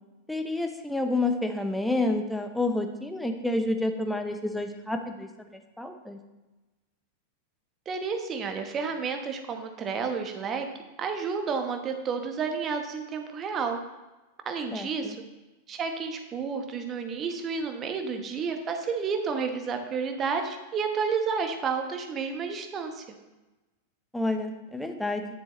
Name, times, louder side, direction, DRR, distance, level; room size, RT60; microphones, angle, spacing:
voice 1, 0.3-6.2 14.7-15.2 24.1-25.3, left 2 dB, 5° left, 6 dB, 0.9 m, -29 dB
voice 2, 7.9-10.7 11.0-13.8 14.4-15.2 15.7-23.0, right 5 dB, 25° right, 5 dB, 1.1 m, -31 dB
10.0 x 7.5 x 3.2 m, 1.1 s
figure-of-eight pair, 90°, 0 cm